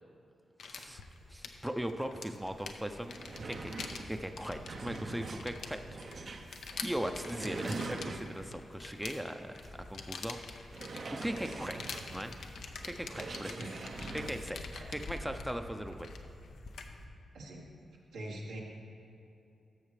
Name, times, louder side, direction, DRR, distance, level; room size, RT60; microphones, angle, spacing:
sound 1, 0.6-17.0, left 5 dB, 80° left, 0.5 m, -47 dB
voice 1, 0.6-1.0 1.3-3.2 3.4-5.8 6.8-10.4 11.2-12.3 12.8-13.7 14.1-16.1, equal, 5° right, 7 dB, 0.5 m, -39 dB
sound 2, 0.8-17.1, left 1 dB, 45° left, 0.9 m, -53 dB
sound 3, 2.5-2.6 2.9-8.6 9.1-9.2 9.6-9.7 10.7-14.5, right 3 dB, 60° right, 0.6 m, -44 dB
voice 2, 17.3-17.9 18.1-18.6, right 1 dB, 90° right, -3 dB, 1.3 m, -44 dB
12.0 x 6.4 x 3.2 m, 2.8 s
supercardioid pair, 50°, 0 cm